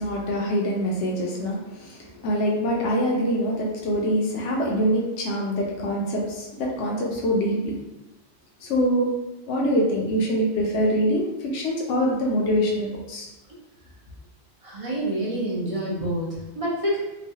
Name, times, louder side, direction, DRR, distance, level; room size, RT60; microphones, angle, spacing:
voice 1, 0.0-7.8 8.6-9.1 9.5-13.3, equal, 80° left, -2 dB, 0.9 m, -24 dB
voice 2, 14.6-17.0, right 1 dB, 40° right, -5 dB, 0.5 m, -27 dB
3.0 x 2.1 x 2.7 m, 0.99 s
omnidirectional pair, 1.2 m